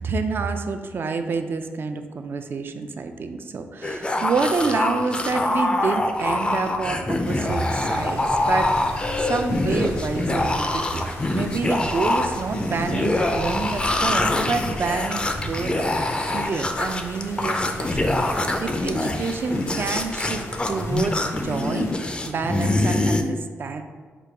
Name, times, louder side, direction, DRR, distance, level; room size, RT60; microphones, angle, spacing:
voice 1, 0.0-15.9 16.2-23.8, right 4 dB, 50° right, 7 dB, 0.4 m, -28 dB
sound 1, 3.8-23.2, left 2 dB, 20° left, 0.4 m, -24 dB
sound 2, 7.2-21.9, left 1 dB, 85° left, 0.8 m, -37 dB
5.0 x 2.2 x 4.7 m, 1.5 s
cardioid pair, 100°, 5 cm